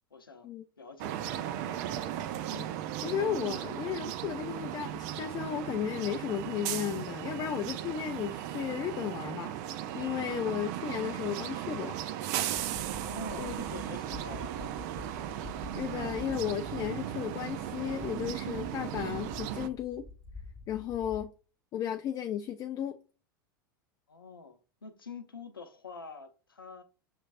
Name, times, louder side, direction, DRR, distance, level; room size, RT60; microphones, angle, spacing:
voice 1, 0.1-0.5 0.8-1.8 12.9-14.8 24.1-26.8, left 4 dB, 85° left, 0.6 m, -46 dB
sound 1, 1.0-19.7, right 11 dB, 50° right, 0.5 m, -36 dB
voice 2, 3.0-12.0 13.4-13.5 15.7-20.0 20.7-21.3 21.7-23.0, left 9 dB, 35° left, 0.4 m, -34 dB
sound 2, 12.6-21.2, left 3 dB, 15° left, 1.6 m, -48 dB
5.9 x 3.1 x 2.4 m
figure-of-eight pair, 85°, 11 cm